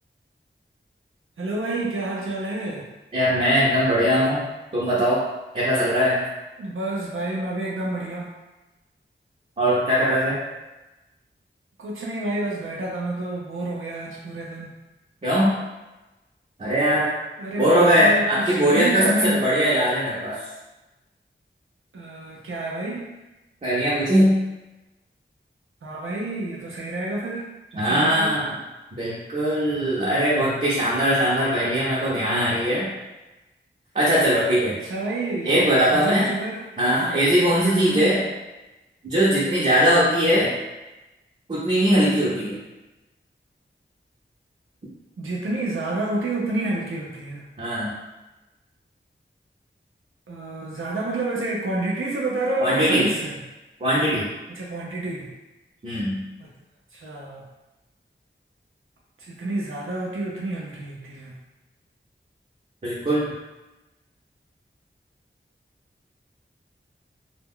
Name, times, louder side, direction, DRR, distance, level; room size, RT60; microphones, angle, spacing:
voice 1, 1.4-2.9 6.6-8.3 11.8-14.7 17.4-19.5 21.9-23.1 25.8-28.4 34.8-35.5 35.9-36.6 37.6-38.1 45.2-47.4 50.3-53.4 54.5-55.3 56.4-56.5 56.9-57.4 59.2-61.4, right 2 dB, 90° right, -4 dB, 0.5 m, -29 dB
voice 2, 3.1-4.5 4.7-5.2 5.5-6.2 9.6-10.4 15.2-15.5 16.6-17.1 17.6-20.4 23.6-24.4 27.8-28.5 29.0-32.9 33.9-34.8 35.4-36.3 36.8-38.2 39.0-40.5 41.5-42.6 47.6-47.9 52.6-53.1 53.8-54.3 55.8-56.2 62.8-63.3, equal, 35° right, -8 dB, 0.6 m, -20 dB
2.2 x 2.1 x 3.6 m, 1.1 s
wide cardioid pair, 65°, 21 cm